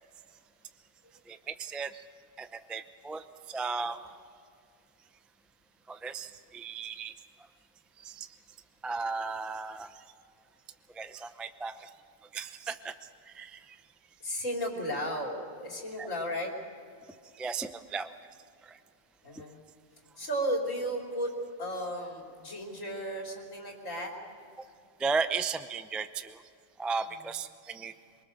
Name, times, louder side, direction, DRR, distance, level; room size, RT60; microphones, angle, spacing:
voice 1, 1.3-2.0 2.4-4.2 5.9-7.1 8.0-8.3 8.8-9.9 10.9-11.9 12.3-12.9 13.3-13.8 16.0-16.1 17.3-18.1 18.6-18.8 19.3-19.4 24.6-24.7 25.0-26.4 26.8-27.9, right 4 dB, ahead, 10 dB, 0.4 m, -35 dB
voice 2, 14.2-16.5 19.2-19.6 20.2-24.1, equal, 80° left, 0 dB, 3.8 m, -34 dB
24.0 x 23.5 x 6.5 m, 2.4 s
omnidirectional pair, 1.3 m